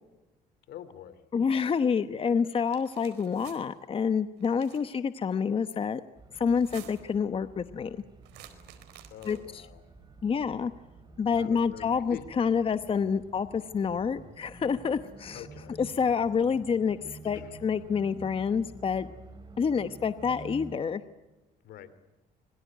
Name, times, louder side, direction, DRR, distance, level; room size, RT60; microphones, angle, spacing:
voice 1, 0.7-1.2 9.1-9.8 11.2-12.2 15.3-15.8 17.0-17.5 21.6-21.9, left 11 dB, 70° left, 14 dB, 2.9 m, -45 dB
voice 2, 1.3-6.0 6.3-8.0 9.2-9.7 10.2-10.7 11.2-15.5 15.8-19.1 19.6-21.0, left 6 dB, 35° left, 11 dB, 1.0 m, -28 dB
sound 1, 2.6-3.6 4.4-4.9 6.5-7.2 8.2-9.6, right 11 dB, 90° right, 4.3 m, -51 dB
sound 2, 6.2-20.7, right 3 dB, 25° right, 5.4 m, -49 dB
26.5 x 22.5 x 9.3 m, 1.1 s
cardioid pair, 110°, 17 cm